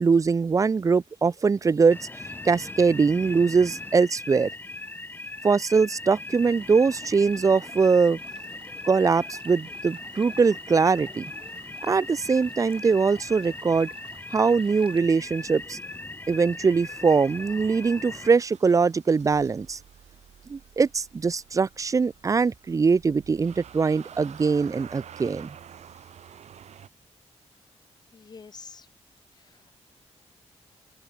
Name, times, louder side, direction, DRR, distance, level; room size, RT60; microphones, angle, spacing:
voice 1, 0.0-2.0 2.4-4.5 5.4-8.2 8.8-11.3 11.8-13.9 14.3-15.8 16.3-19.8 20.5-25.5, right 5 dB, 30° right, 0.4 m, -22 dB
sound 1, 1.9-18.3, left 2 dB, 20° left, 1.5 m, -39 dB
Stream, 6.4-15.0, right 6 dB, 50° right, 3.8 m, -52 dB
Motor vehicle (road) / Engine starting, 18.3-26.9, right 9 dB, 80° right, 2.2 m, -49 dB
voice 2, 28.1-28.9 29.4-29.7, left 5 dB, 40° left, 0.9 m, -47 dB
open air
wide cardioid pair, 115°, 11 cm